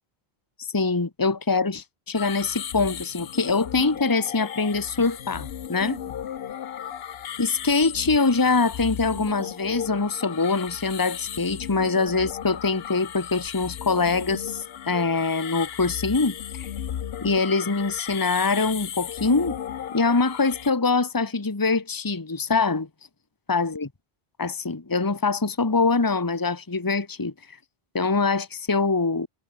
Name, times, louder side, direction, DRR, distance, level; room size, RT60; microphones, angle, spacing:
voice 1, 0.6-6.0 7.4-16.7 17.2-19.6 19.9-22.9 23.5-23.9 24.4-27.3 27.9-29.3, left 4 dB, 20° left, 1.3 m, -24 dB
sound 1, 2.1-20.7, left 9 dB, 70° left, 1.0 m, -36 dB
omnidirectional pair, 1.1 m